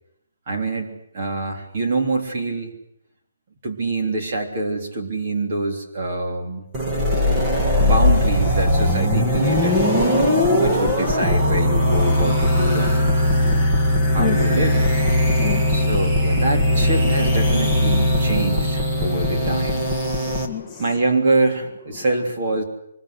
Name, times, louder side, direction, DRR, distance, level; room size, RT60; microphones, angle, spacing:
voice 1, 0.5-2.7 3.6-6.6 7.8-9.8 10.6-13.7 14.1-14.8 15.7-20.0 20.8-22.6, right 2 dB, 30° right, 2 dB, 3.4 m, -25 dB
sound 1, 6.7-20.5, left 1 dB, 10° right, 1.9 m, -19 dB
voice 2, 13.4-14.4 15.2-15.9 20.2-20.8, left 8 dB, 5° left, -4 dB, 1.2 m, -31 dB
24.0 x 21.5 x 8.2 m, 0.78 s
hypercardioid pair, 175°, 0 cm